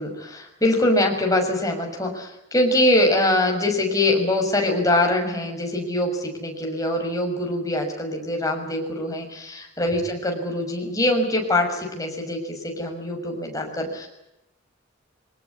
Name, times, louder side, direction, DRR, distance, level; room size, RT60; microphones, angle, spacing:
voice 1, 0.0-14.1, left 1 dB, 20° left, 2 dB, 6.6 m, -23 dB
25.0 x 19.5 x 9.9 m, 0.88 s
head